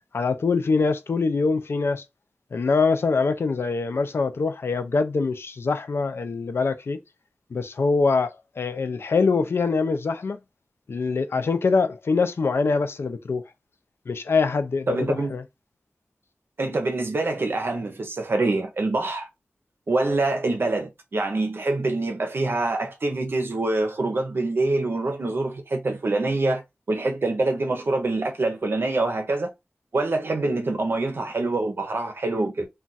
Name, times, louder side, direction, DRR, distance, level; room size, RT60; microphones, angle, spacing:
voice 1, 0.1-2.0 2.5-7.0 7.5-10.4 10.9-13.4 14.1-15.4, left 4 dB, 80° left, 0.4 m, -24 dB
voice 2, 14.9-15.4 16.6-19.3 19.9-26.6 26.9-29.5 29.9-32.7, right 2 dB, 65° right, 0.6 m, -25 dB
2.4 x 2.2 x 3.9 m
wide cardioid pair, 80°, 4 cm